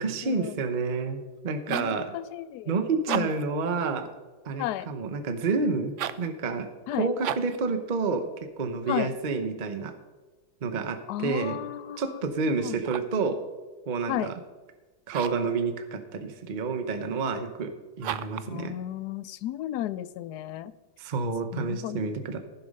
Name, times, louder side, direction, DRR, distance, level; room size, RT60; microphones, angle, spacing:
voice 1, 0.0-2.2 2.7-4.1 4.4-9.9 10.6-11.6 12.0-13.4 13.9-14.4 15.1-18.7 21.0-22.4, right 4 dB, 35° right, 8 dB, 0.8 m, -29 dB
sound 1, 1.4-2.0 2.9-3.5 5.9-6.3 7.2-7.6 12.7-13.2 15.1-15.5 18.0-18.5, right 10 dB, 80° right, 0.6 m, -34 dB
voice 2, 1.7-2.7 3.1-3.3 4.6-4.9 6.9-7.1 8.9-9.1 11.1-12.0 12.5-12.8 14.1-14.3 18.5-20.7 21.5-22.0, left 13 dB, 75° left, 16 dB, 1.1 m, -33 dB
15.5 x 7.2 x 5.3 m, 1.3 s
omnidirectional pair, 1.8 m